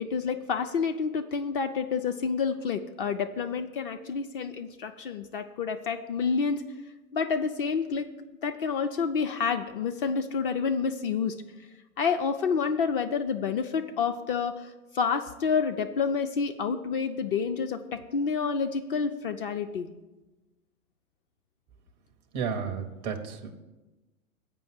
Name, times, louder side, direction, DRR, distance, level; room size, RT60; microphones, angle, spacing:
voice 1, 0.0-6.6 7.1-8.1 8.4-11.3 12.0-19.9, left 5 dB, 40° left, 8 dB, 0.5 m, -29 dB
voice 2, 22.3-23.5, right 6 dB, 15° right, 5 dB, 0.4 m, -32 dB
7.6 x 5.3 x 7.3 m, 1.1 s
figure-of-eight pair, 110°, 43 cm